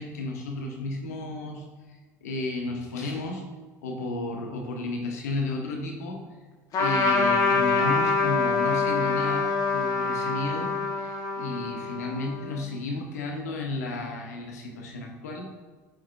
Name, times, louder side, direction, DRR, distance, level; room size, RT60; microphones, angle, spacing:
voice 1, 0.0-1.7 2.2-3.4 3.8-6.2 6.8-10.7 11.0-15.5, left 2 dB, 80° left, 1 dB, 1.0 m, -33 dB
Trumpet, 6.7-12.6, left 4 dB, 45° left, 1.0 m, -25 dB
7.6 x 4.6 x 2.8 m, 1.4 s
hypercardioid pair, 70°, 9 cm